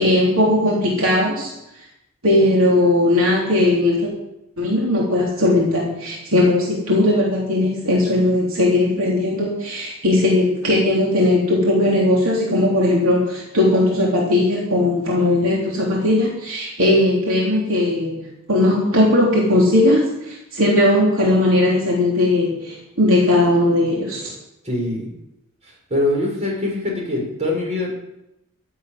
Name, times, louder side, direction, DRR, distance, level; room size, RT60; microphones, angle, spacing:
voice 1, 0.0-1.5 2.2-4.1 4.6-18.2 18.5-24.3, left 1 dB, 70° right, -3 dB, 3.5 m, -18 dB
voice 2, 24.6-25.1 25.9-27.9, left 1 dB, 30° right, -2 dB, 6.1 m, -23 dB
14.0 x 8.4 x 9.2 m, 0.87 s
head